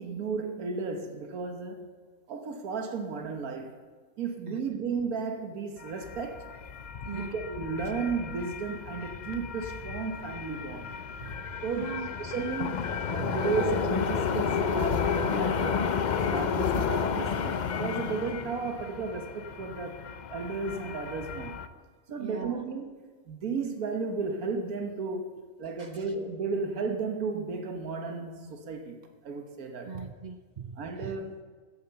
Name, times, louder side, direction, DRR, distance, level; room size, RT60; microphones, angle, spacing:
voice 1, 0.0-1.9 2.3-3.8 4.2-6.4 7.1-10.9 11.6-15.9 16.3-20.0 20.3-21.6 22.1-22.9 23.3-25.3 25.6-29.0 29.2-29.9 30.8-31.3, right 4 dB, 85° right, 5 dB, 1.7 m, -34 dB
sound 1, 5.8-21.7, left 6 dB, 65° left, 0.4 m, -32 dB
voice 2, 11.2-12.1 13.2-13.4 16.7-16.8 22.2-22.6 25.8-26.1 29.8-31.2, right 5 dB, 60° right, 8 dB, 0.4 m, -40 dB
15.0 x 7.6 x 6.9 m, 1.5 s
omnidirectional pair, 1.5 m